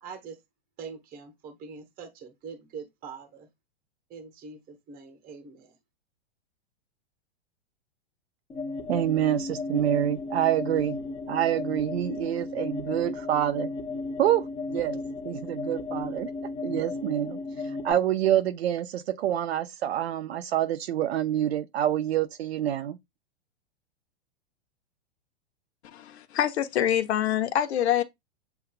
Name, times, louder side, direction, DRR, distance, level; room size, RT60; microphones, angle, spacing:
voice 1, 0.0-0.4 0.8-3.5 4.1-5.7, right 5 dB, 25° right, 0.9 m, -43 dB
sound 1, 8.5-17.9, left 3 dB, 15° left, 0.9 m, -35 dB
voice 2, 8.9-11.0 11.3-13.7 14.2-15.0 15.3-17.4 17.8-23.0, right 11 dB, 65° right, 0.6 m, -27 dB
voice 3, 25.8-28.0, left 10 dB, 70° left, 0.9 m, -25 dB
7.8 x 2.6 x 2.2 m
hypercardioid pair, 110°, 33 cm